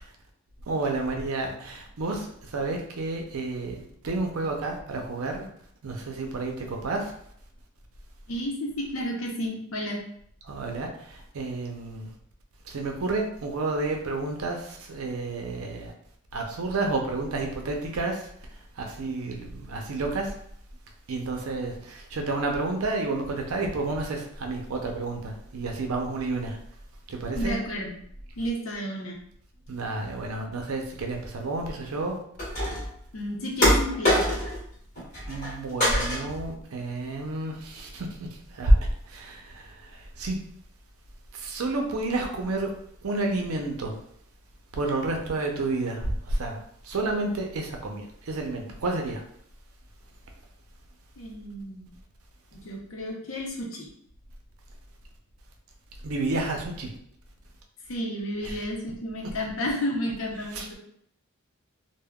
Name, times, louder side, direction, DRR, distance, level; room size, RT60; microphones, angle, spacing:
voice 1, 0.7-5.5 5.8-7.1 10.5-12.1 12.7-15.9 16.3-18.2 18.8-20.4 21.1-26.6 27.1-27.6 29.7-32.2 35.3-40.4 41.3-42.7 43.0-44.0 44.7-46.6 46.8-49.2 56.0-56.9 58.5-58.6 60.5-60.7, right 2 dB, 90° right, 2 dB, 0.6 m, -30 dB
voice 2, 8.3-10.1 27.3-28.0 28.4-29.2 33.1-34.4 51.2-51.9 52.5-53.9 57.9-60.8, equal, 70° left, 0 dB, 0.7 m, -32 dB
sound 1, 32.4-33.0 33.6-34.7 35.0-35.5 35.8-36.5, equal, 35° left, 1.3 m, -24 dB
3.5 x 2.1 x 2.2 m, 0.67 s
head